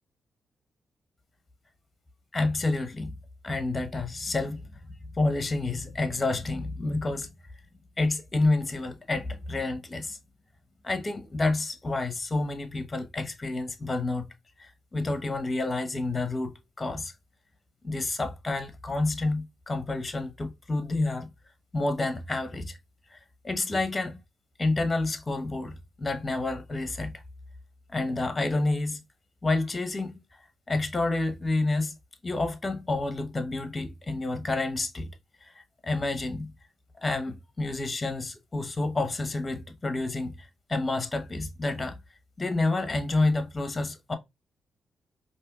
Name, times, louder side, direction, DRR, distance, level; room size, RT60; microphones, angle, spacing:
voice 1, 2.3-3.1 3.4-4.8 5.2-7.3 8.0-10.2 10.8-14.3 14.6-17.1 17.8-21.3 21.7-22.8 23.1-24.2 24.6-27.2 27.9-29.0 29.4-30.2 30.7-31.9 32.2-35.1 35.4-36.5 37.0-42.0 42.4-44.2, left 2 dB, 30° left, 0.9 m, -29 dB
4.3 x 2.8 x 2.3 m
supercardioid pair, 50°, 0 cm